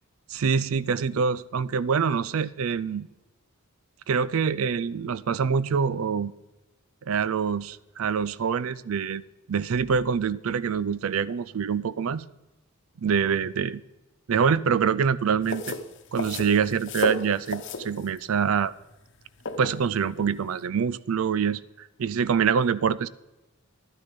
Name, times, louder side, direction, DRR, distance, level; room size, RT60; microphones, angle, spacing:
voice 1, 0.3-3.1 4.1-6.3 7.1-9.2 9.5-12.3 13.0-13.8 14.3-15.8 16.1-18.7 19.6-23.1, right 6 dB, 70° right, 19 dB, 0.4 m, -25 dB
sound 1, 15.4-20.6, left 3 dB, 55° left, 1.0 m, -34 dB
11.5 x 9.8 x 5.3 m, 1.1 s
head